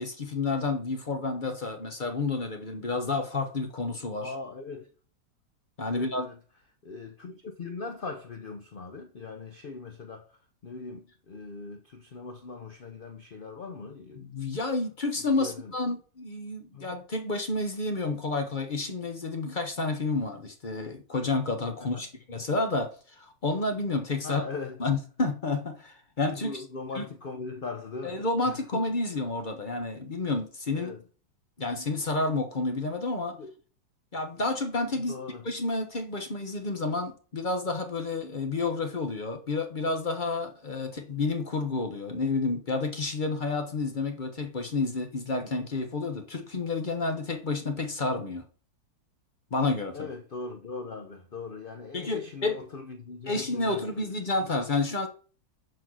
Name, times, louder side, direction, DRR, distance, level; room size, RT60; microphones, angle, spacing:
voice 1, 0.0-4.3 5.8-6.3 14.2-24.4 24.8-26.6 26.9-27.1 28.0-30.9 31.6-33.4 34.1-35.2 35.4-48.4 49.5-50.1 51.9-52.6 53.3-55.1, left 3 dB, 40° left, 0.7 m, -30 dB
voice 2, 4.2-4.9 5.9-6.4 6.8-14.2 15.4-15.7 16.7-16.9 21.8-22.1 24.2-25.0 26.4-28.8 30.7-31.0 33.3-33.5 35.1-35.5 49.9-54.0, left 4 dB, 85° left, 0.4 m, -40 dB
5.9 x 4.7 x 6.1 m
omnidirectional pair, 1.9 m